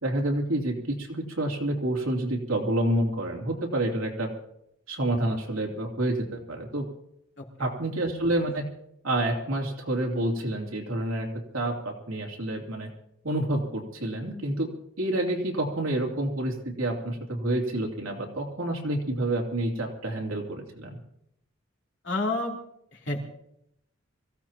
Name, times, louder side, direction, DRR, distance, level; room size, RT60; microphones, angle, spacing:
voice 1, 0.0-4.3 4.9-6.9 7.6-8.6 9.0-11.3 11.5-12.9 13.2-14.7 15.0-21.0, right 1 dB, 85° right, 1 dB, 3.0 m, -28 dB
voice 2, 7.4-7.7 22.0-22.6 22.9-23.2, left 2 dB, 60° left, -2 dB, 3.4 m, -30 dB
25.0 x 16.0 x 3.0 m, 0.77 s
head